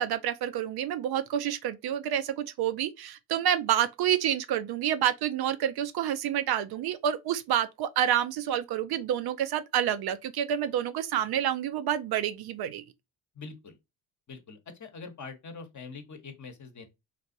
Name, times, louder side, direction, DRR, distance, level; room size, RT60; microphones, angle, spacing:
voice 1, 0.0-12.8, right 10 dB, 60° right, 0.5 m, -28 dB
voice 2, 13.3-13.8 14.3-16.9, left 4 dB, 40° left, 0.9 m, -44 dB
3.2 x 2.4 x 2.6 m
hypercardioid pair, 50°, 45 cm